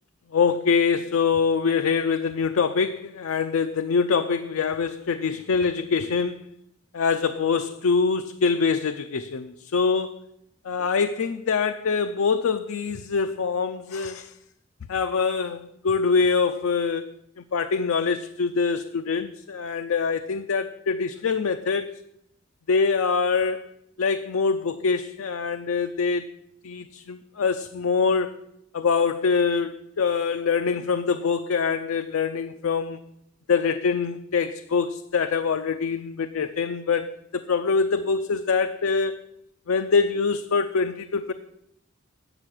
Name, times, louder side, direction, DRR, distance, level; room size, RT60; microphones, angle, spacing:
voice 1, 0.3-6.4 6.9-10.2 10.6-14.3 14.9-17.1 17.4-22.0 22.7-23.6 24.0-26.3 26.6-28.4 28.7-33.0 33.5-39.2 39.7-41.3, left 5 dB, 80° left, 0.5 m, -24 dB
8.9 x 6.8 x 6.4 m
head